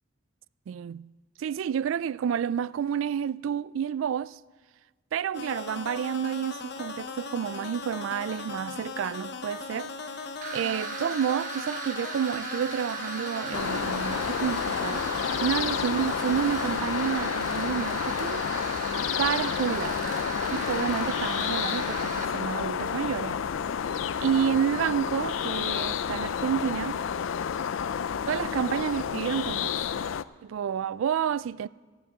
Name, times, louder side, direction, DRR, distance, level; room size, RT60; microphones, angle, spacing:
voice 1, 0.7-1.1 1.4-4.4 5.1-9.9 10.5-15.0 15.4-18.4 19.2-20.0 20.5-23.4 24.2-27.0 28.3-29.8 30.4-31.7, right 8 dB, 75° right, 0.3 m, -29 dB
sound 1, 5.3-16.8, left 4 dB, 55° left, 0.8 m, -38 dB
sound 2, 10.4-22.2, right 4 dB, 40° right, 1.1 m, -37 dB
sound 3, 13.5-30.2, left 7 dB, 75° left, 0.4 m, -30 dB
14.0 x 8.1 x 8.8 m
head